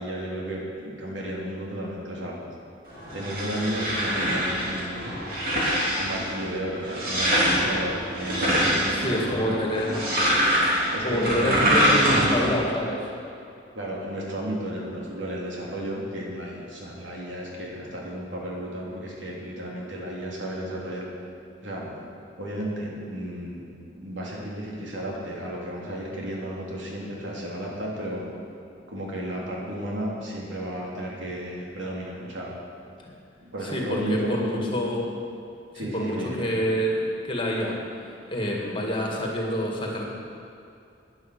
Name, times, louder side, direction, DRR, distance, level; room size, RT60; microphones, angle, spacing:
voice 1, 0.0-2.4 3.1-5.1 6.0-9.6 10.9-12.5 13.7-21.1 21.6-21.9 22.4-28.2 28.9-32.5 33.4-34.7 35.7-36.4, right 1 dB, 85° right, -3 dB, 3.1 m, -33 dB
sound 1, 2.9-12.5, equal, 50° right, 3.5 m, -25 dB
voice 2, 8.9-10.0 11.0-13.1 33.6-35.0 35.8-37.8 38.3-40.1, equal, 25° left, -1 dB, 2.1 m, -27 dB
11.0 x 10.5 x 7.7 m, 2.6 s
head